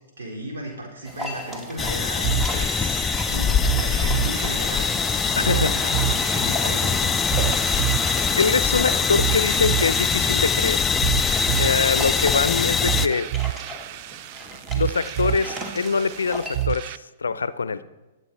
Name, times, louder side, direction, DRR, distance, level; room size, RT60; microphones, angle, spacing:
voice 1, 0.2-4.9 5.2-7.2 17.2-17.3 17.7-17.8, right 1 dB, 75° right, 4.3 m, -35 dB
sound 1, 1.1-16.7, equal, 15° right, 2.1 m, -37 dB
sound 2, 1.8-13.1, left 6 dB, 15° left, 0.5 m, -23 dB
sound 3, 2.2-17.0, right 16 dB, 45° right, 0.4 m, -29 dB
voice 2, 8.4-10.9 11.6-13.3 14.7-17.8, left 5 dB, 80° left, 0.6 m, -24 dB
21.5 x 8.1 x 4.3 m
hypercardioid pair, 115°, 0 cm